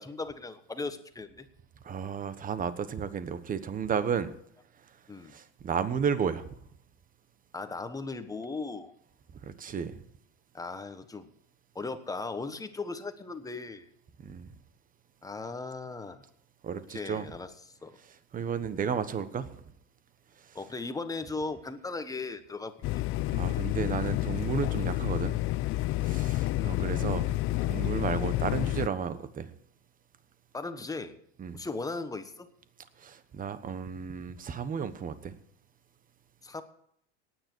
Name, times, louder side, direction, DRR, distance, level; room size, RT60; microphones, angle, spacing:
voice 1, 0.0-1.5 5.1-5.3 7.5-8.9 10.5-11.3 11.7-13.9 15.2-16.2 16.9-17.5 17.8-18.0 20.5-23.0 26.6-26.8 30.5-31.2 31.5-32.5 36.4-36.6, left 3 dB, 10° left, 10 dB, 1.3 m, -37 dB
voice 2, 1.8-4.3 5.2-6.5 9.4-10.0 14.2-14.5 16.6-17.3 18.3-19.6 20.4-20.6 23.3-25.3 26.0-27.3 27.6-29.5 31.4-31.6 33.0-35.4, right 7 dB, 25° right, 13 dB, 1.2 m, -33 dB
sound 1, 22.8-28.9, left 17 dB, 40° left, 0.5 m, -29 dB
17.5 x 9.6 x 4.6 m, 0.69 s
supercardioid pair, 125°, 34 cm